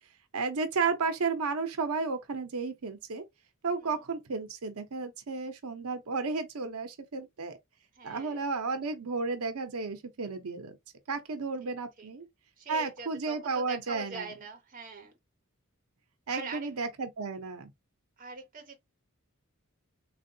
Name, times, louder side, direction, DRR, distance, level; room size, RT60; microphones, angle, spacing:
voice 1, 0.3-3.2 3.6-7.6 8.0-10.8 11.1-12.3 12.7-14.3 16.3-17.7, right 4 dB, 90° right, 0.7 m, -33 dB
voice 2, 7.9-8.4 11.6-11.7 12.0-12.1 12.6-15.1 16.3-16.7 18.2-18.8, right 4 dB, 40° right, 0.8 m, -42 dB
3.5 x 2.3 x 2.6 m
head